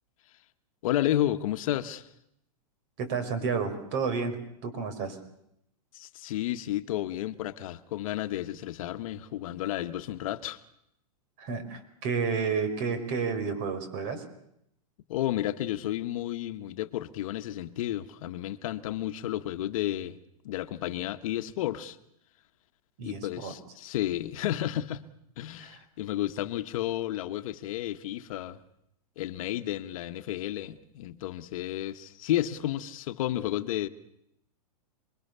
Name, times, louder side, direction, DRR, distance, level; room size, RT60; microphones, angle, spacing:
voice 1, 0.8-2.1 5.9-10.6 15.1-20.2 20.4-22.0 23.0-25.0 25.4-28.6 29.2-33.9, left 13 dB, 60° left, 1.4 m, -32 dB
voice 2, 3.0-4.4 4.6-5.2 11.4-14.2 23.0-23.5 25.6-25.8, right 5 dB, 45° right, 5.3 m, -31 dB
27.5 x 22.5 x 6.9 m
hypercardioid pair, 135°, 20 cm